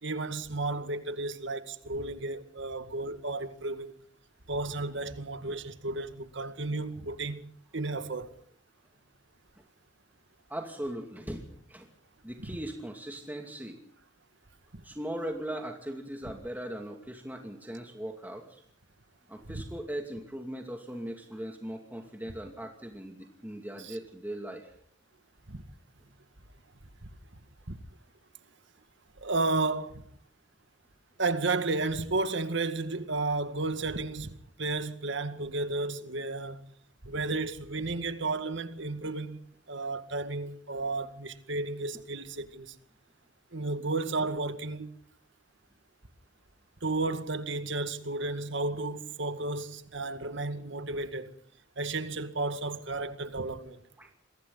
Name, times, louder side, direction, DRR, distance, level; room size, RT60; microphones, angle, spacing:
voice 1, 0.0-3.9 4.5-7.4 7.7-8.3 12.4-12.5 14.7-14.8 19.5-19.6 23.8-24.0 25.5-25.6 27.0-27.1 27.7-27.8 29.2-30.0 31.2-36.7 37.0-39.4 39.7-42.8 43.5-44.9 46.8-51.3 51.8-53.8, right 3 dB, 70° right, 2.0 m, -33 dB
voice 2, 10.5-11.9 12.2-13.8 14.8-18.6 19.3-24.7 54.0-54.1, right 1 dB, 10° right, 2.5 m, -39 dB
28.5 x 23.5 x 4.0 m
head